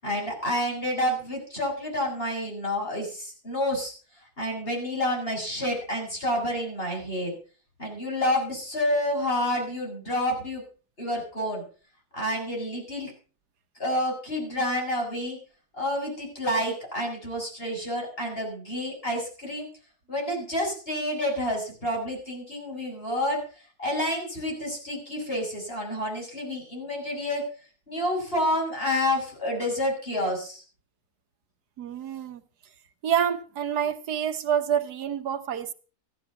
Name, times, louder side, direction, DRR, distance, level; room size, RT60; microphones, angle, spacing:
voice 1, 0.0-3.9 4.4-7.4 7.8-10.6 11.0-11.6 12.1-13.1 13.8-15.4 15.7-19.7 20.1-23.4 23.8-27.4 27.9-30.6, left 1 dB, 35° left, 7.6 m, -29 dB
voice 2, 31.8-32.4 33.0-35.7, right 8 dB, 85° right, 1.6 m, -27 dB
15.5 x 11.5 x 5.9 m
omnidirectional pair, 1.7 m